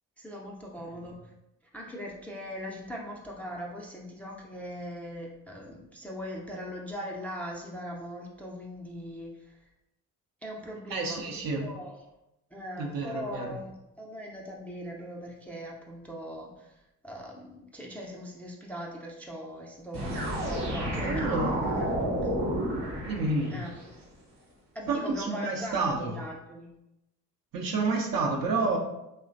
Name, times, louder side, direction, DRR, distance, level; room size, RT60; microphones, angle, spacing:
voice 1, 0.2-1.3 1.7-9.7 10.4-11.2 11.6-12.0 12.5-21.9 22.2-22.3 23.5-23.7 24.7-26.7, equal, 5° left, -1 dB, 0.4 m, -40 dB
voice 2, 10.9-11.7 12.8-13.5 20.9-21.5 23.0-23.5 24.9-26.1 27.5-28.8, right 3 dB, 55° right, 1 dB, 0.7 m, -29 dB
sound 1, 19.9-23.9, right 1 dB, 75° right, 1.0 m, -31 dB
3.0 x 2.1 x 2.5 m, 0.90 s
hypercardioid pair, 45°, 42 cm